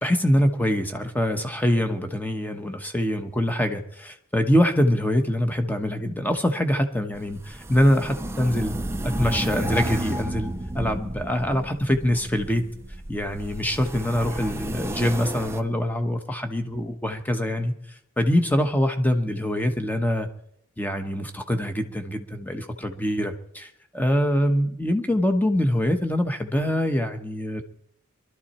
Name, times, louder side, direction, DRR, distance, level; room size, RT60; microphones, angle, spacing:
voice 1, 0.0-8.8 9.0-12.6 13.1-20.3 20.8-27.6, equal, 10° left, 7 dB, 1.1 m, -24 dB
sound 1, 7.1-15.6, right 1 dB, 10° right, 0.5 m, -32 dB
23.0 x 12.5 x 4.3 m, 0.73 s
head